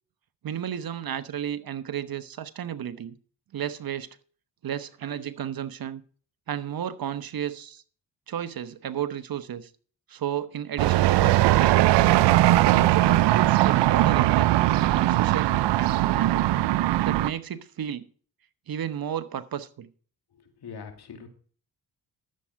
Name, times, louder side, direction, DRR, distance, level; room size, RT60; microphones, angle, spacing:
voice 1, 0.4-3.2 3.5-4.1 4.6-6.0 6.5-7.8 8.3-9.7 10.1-12.1 12.6-14.5 14.9-16.4 17.0-18.0 18.7-19.9, right 9 dB, 60° right, 1.0 m, -32 dB
sound 1, 10.8-17.3, right 16 dB, 85° right, 0.6 m, -20 dB
voice 2, 20.3-21.3, left 6 dB, 70° left, 2.6 m, -42 dB
12.5 x 7.6 x 4.6 m
supercardioid pair, 55°, 41 cm